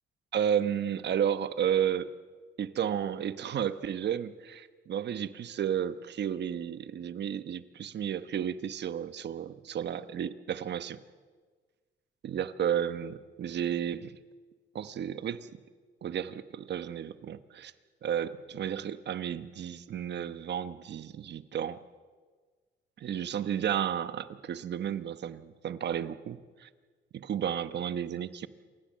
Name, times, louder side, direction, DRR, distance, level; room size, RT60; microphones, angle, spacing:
voice 1, 0.3-2.1 2.6-11.0 12.2-14.2 14.7-15.5 16.0-17.7 18.0-21.8 23.0-26.7 27.1-28.5, right 9 dB, 60° right, 13 dB, 1.1 m, -32 dB
28.0 x 15.0 x 7.5 m, 1.5 s
cardioid pair, 90°, 20 cm